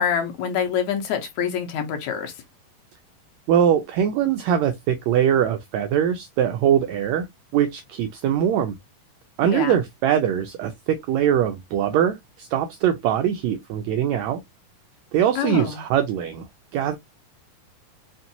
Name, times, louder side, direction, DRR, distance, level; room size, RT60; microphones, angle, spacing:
voice 1, 0.0-2.3 9.4-9.8 15.4-15.8, left 8 dB, 70° left, 2.1 m, -26 dB
voice 2, 3.5-7.3 7.5-8.8 9.4-14.4 15.1-16.4 16.7-17.0, right 9 dB, 90° right, 1.5 m, -22 dB
5.5 x 2.6 x 2.7 m
omnidirectional pair, 3.7 m